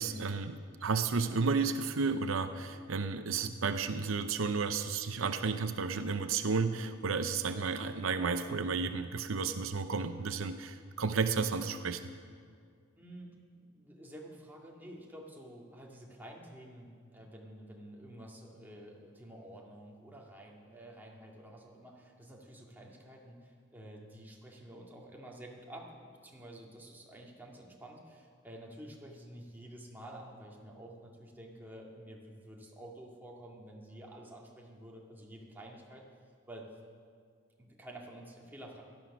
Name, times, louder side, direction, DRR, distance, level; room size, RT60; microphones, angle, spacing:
voice 1, 0.0-12.0, right 4 dB, 75° right, 9 dB, 0.7 m, -32 dB
voice 2, 13.0-36.0 36.5-36.7 37.6-38.8, right 1 dB, 10° right, -2 dB, 2.1 m, -50 dB
17.0 x 12.0 x 6.1 m, 2.1 s
head